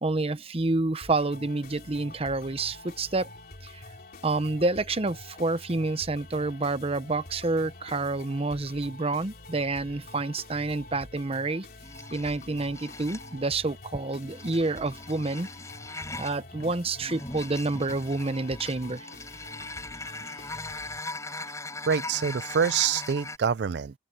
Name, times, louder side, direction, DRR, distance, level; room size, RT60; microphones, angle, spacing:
voice 1, 0.0-3.3 3.6-3.8 4.2-11.7 12.1-15.5 16.2-19.1, right 2 dB, 35° right, 0.9 m, -28 dB
sound 1, 1.0-21.0, left 2 dB, 60° left, 3.6 m, -47 dB
sound 2, 11.8-13.4 14.1-23.4, left 2 dB, 20° left, 6.5 m, -40 dB
voice 2, 21.2-21.5 21.9-23.9, right 7 dB, 70° right, 0.4 m, -26 dB
open air
head